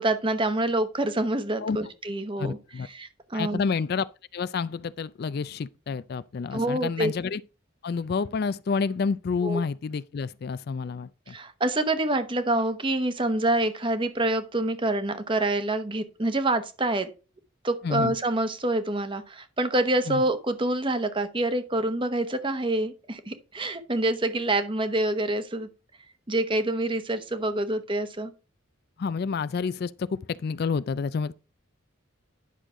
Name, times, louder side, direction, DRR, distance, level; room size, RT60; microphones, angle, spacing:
voice 1, 0.0-2.6 2.9-3.6 6.5-7.1 9.4-9.6 11.3-17.1 17.6-25.7 26.3-28.3, right 2 dB, 25° right, 0.9 m, -26 dB
voice 2, 2.4-2.9 3.3-4.1 4.3-7.4 7.8-11.4 17.8-18.1 20.1-20.2 29.0-31.3, left 5 dB, 50° left, 0.3 m, -29 dB
10.0 x 6.3 x 3.7 m
head